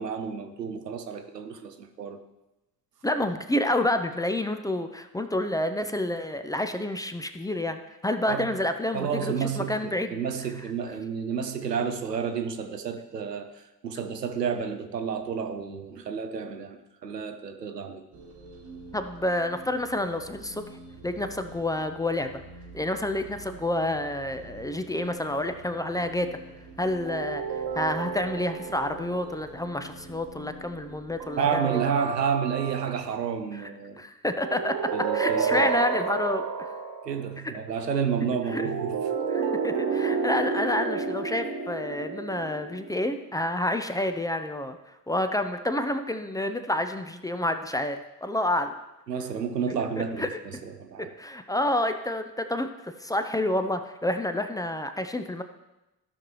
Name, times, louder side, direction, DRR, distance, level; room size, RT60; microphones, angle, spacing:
voice 1, 0.0-2.2 8.3-8.5 8.9-18.1 31.4-34.0 34.9-35.7 37.0-39.0 49.1-51.1, right 6 dB, 90° right, 0.6 m, -30 dB
voice 2, 3.0-10.2 18.9-20.6 21.0-22.4 22.7-26.4 26.8-31.8 33.6-33.7 34.0-36.7 37.4-37.5 38.5-38.7 39.3-44.8 45.1-48.7 50.2-50.4 51.2-55.4, left 1 dB, 10° left, 0.5 m, -29 dB
sound 1, 18.1-31.9, right 2 dB, 70° right, 1.7 m, -47 dB
sound 2, 27.1-29.5 31.2-33.0 34.4-37.2 38.5-43.0, right 5 dB, 45° right, 1.3 m, -30 dB
15.0 x 6.0 x 3.0 m
figure-of-eight pair, 45°, 48 cm